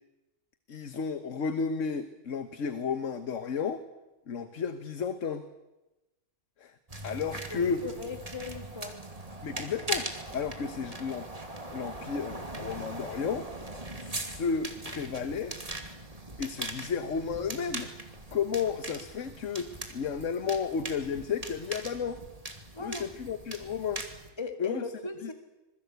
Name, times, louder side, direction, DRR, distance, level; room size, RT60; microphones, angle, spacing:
voice 1, 0.7-3.8 4.3-5.5 6.6-6.8 7.0-7.9 9.4-11.3 11.7-13.5 14.0-15.6 16.4-17.9 18.3-22.2 22.8-24.1 24.6-24.8 25.2-25.3, left 6 dB, 65° left, 10 dB, 1.5 m, -33 dB
sound 1, 6.9-24.3, right 2 dB, 25° right, 2.8 m, -40 dB
voice 2, 7.5-9.0 22.7-23.1 24.4-25.3, left 4 dB, 20° left, 7 dB, 2.0 m, -38 dB
26.0 x 21.5 x 8.1 m, 1.0 s
omnidirectional pair, 1.4 m